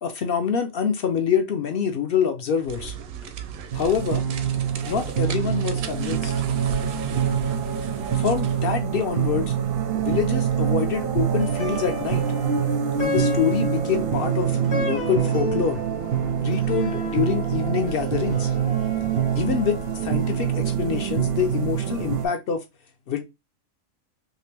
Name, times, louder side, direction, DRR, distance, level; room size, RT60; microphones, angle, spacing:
voice 1, 0.0-2.9 3.7-4.2 4.8-6.3 8.1-9.5 9.9-12.3 13.0-15.8 16.4-18.5 19.3-22.6 23.1-23.2, left 7 dB, 65° left, 0.5 m, -26 dB
sound 1, 2.6-8.7, right 6 dB, 90° right, 1.0 m, -36 dB
sound 2, 3.7-22.3, right 8 dB, 60° right, 0.6 m, -25 dB
Plucked string instrument, 11.4-20.8, left 2 dB, 45° left, 1.0 m, -35 dB
2.9 x 2.9 x 3.2 m
omnidirectional pair, 1.4 m